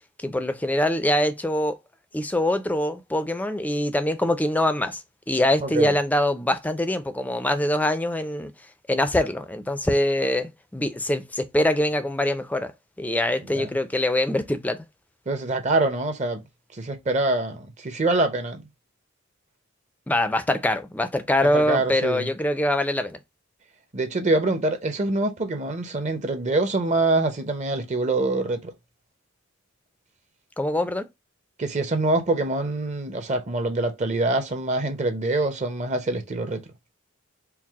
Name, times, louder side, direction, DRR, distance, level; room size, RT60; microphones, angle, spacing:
voice 1, 0.2-1.8 2.1-5.0 5.3-8.5 8.9-12.7 13.0-14.8 20.1-23.2 30.6-31.1, left 1 dB, 10° left, 0.4 m, -24 dB
voice 2, 5.6-5.9 13.5-13.7 15.3-16.4 16.7-18.6 21.5-22.3 23.9-28.7 31.6-36.6, right 2 dB, 35° right, 0.7 m, -25 dB
4.6 x 2.0 x 3.4 m
head